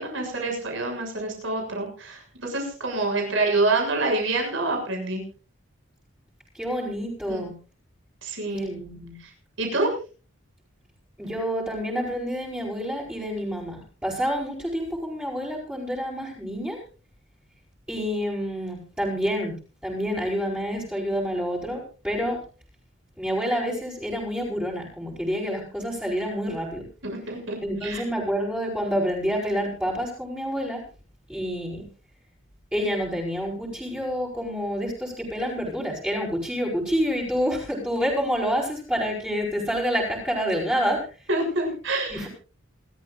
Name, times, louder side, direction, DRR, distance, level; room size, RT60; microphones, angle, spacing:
voice 1, 0.0-5.2 7.3-7.4 8.2-8.7 9.6-9.9 27.0-28.0 41.3-42.3, right 2 dB, 65° right, 2 dB, 7.0 m, -27 dB
voice 2, 6.5-7.6 8.5-9.2 11.2-16.8 17.9-19.6 19.8-22.4 23.2-26.9 27.6-30.8 31.3-31.8 32.7-41.0 42.1-42.3, equal, 5° right, -4 dB, 5.3 m, -28 dB
28.0 x 13.5 x 2.6 m, 0.35 s
head